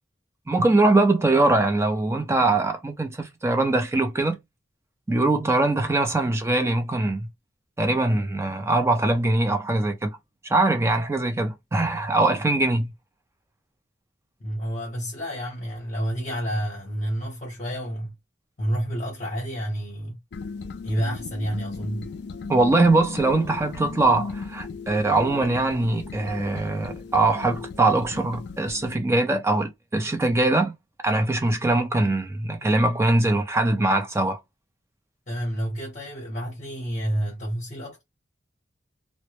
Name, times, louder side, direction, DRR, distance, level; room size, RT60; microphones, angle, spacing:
voice 1, 0.5-4.4 5.1-7.3 7.8-10.2 10.4-12.9 22.5-30.7 31.0-34.4, right 2 dB, 15° right, 0.4 m, -22 dB
voice 2, 11.7-12.1 14.4-18.1 18.6-20.2 20.8-22.1 35.3-38.0, equal, 40° left, 0.7 m, -29 dB
sound 1, 20.3-29.0, left 4 dB, 60° left, 0.3 m, -37 dB
2.1 x 2.1 x 2.9 m
head